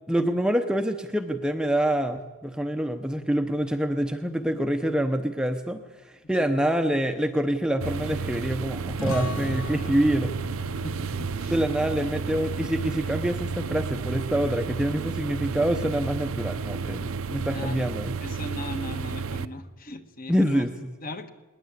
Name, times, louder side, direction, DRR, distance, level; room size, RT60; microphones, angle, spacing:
voice 1, 0.1-10.3 11.5-18.1 20.3-20.9, right 1 dB, 5° right, 7 dB, 0.7 m, -26 dB
sound 1, 7.8-19.4, right 5 dB, 75° right, 0.8 m, -32 dB
sound 2, 9.0-14.2, left 2 dB, 70° left, 2.3 m, -38 dB
voice 2, 10.7-11.7 17.5-17.9 18.2-20.7 21.0-21.3, left 1 dB, 40° left, 9 dB, 1.4 m, -38 dB
20.5 x 20.0 x 8.3 m, 1.2 s
head